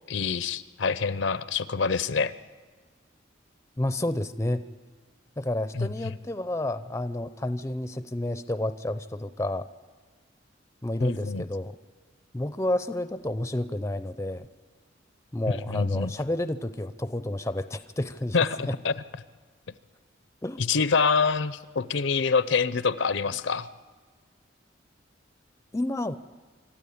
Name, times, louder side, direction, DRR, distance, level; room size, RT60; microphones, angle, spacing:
voice 1, 0.1-2.3 5.7-5.9 11.0-11.4 15.5-16.1 18.3-18.9 20.6-23.7, left 5 dB, 70° left, 15 dB, 0.6 m, -26 dB
voice 2, 3.8-4.6 5.4-9.7 10.8-11.8 12.3-14.5 15.3-18.4 18.7-18.8 20.4-20.6 25.7-26.2, left 1 dB, 15° left, 12 dB, 0.5 m, -30 dB
26.0 x 13.0 x 8.6 m, 1.5 s
head